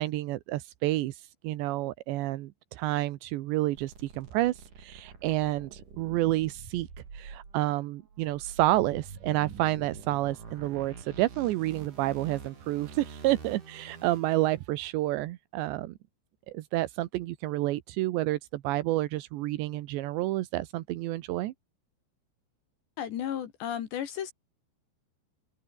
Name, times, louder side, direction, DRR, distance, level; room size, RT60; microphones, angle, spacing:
voice 1, 0.0-6.9 7.1-15.9 16.5-21.5, right 17 dB, 75° right, 3.1 m, -29 dB
sound 1, 3.7-14.6, right 5 dB, 45° right, 6.3 m, -46 dB
voice 2, 23.0-24.3, left 10 dB, 70° left, 4.1 m, -33 dB
omnidirectional pair, 5.5 m